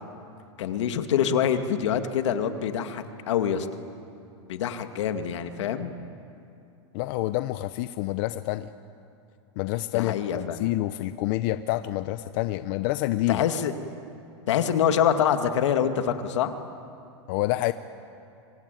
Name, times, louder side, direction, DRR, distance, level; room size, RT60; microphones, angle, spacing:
voice 1, 0.6-3.7 4.5-5.9 9.9-10.6 13.3-13.7 14.5-16.5, left 8 dB, 75° left, 7 dB, 2.1 m, -25 dB
voice 2, 6.9-8.7 9.6-13.4 17.3-17.7, left 16 dB, 45° left, 12 dB, 0.7 m, -28 dB
25.5 x 25.5 x 9.2 m, 2.6 s
supercardioid pair, 150°, 15 cm